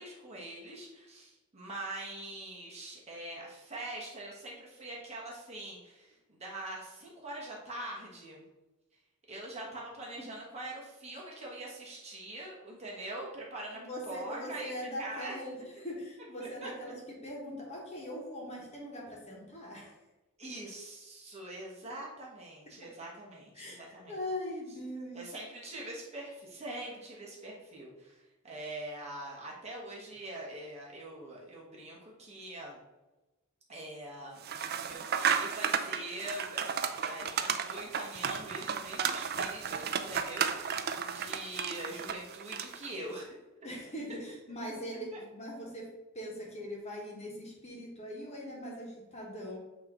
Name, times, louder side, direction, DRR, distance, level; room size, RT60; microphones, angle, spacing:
voice 1, 0.0-8.4 9.3-13.8 14.0-14.7 15.0-15.4 16.4-16.7 20.4-24.1 25.1-32.8 33.7-43.4 45.1-45.2, right 1 dB, 30° right, -3 dB, 1.3 m, -43 dB
voice 2, 13.7-17.0 17.2-19.9 23.5-25.2 43.6-45.9 46.1-49.6, equal, 30° left, -2 dB, 1.4 m, -41 dB
sound 1, 34.4-42.9, right 7 dB, 50° right, 0.4 m, -33 dB
8.2 x 3.0 x 3.9 m, 1.1 s
head